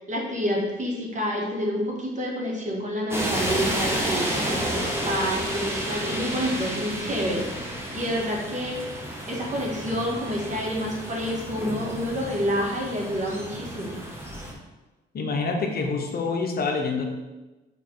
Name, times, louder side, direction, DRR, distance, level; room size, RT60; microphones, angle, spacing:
voice 1, 0.1-7.5 7.9-8.8 9.3-14.0, equal, 40° right, -2 dB, 1.7 m, -28 dB
sound 1, 3.1-14.5, equal, 10° right, 1.3 m, -31 dB
voice 2, 15.1-17.1, left 4 dB, 50° left, 2 dB, 1.0 m, -26 dB
4.5 x 3.9 x 5.5 m, 1.1 s
cardioid pair, 90°, 20 cm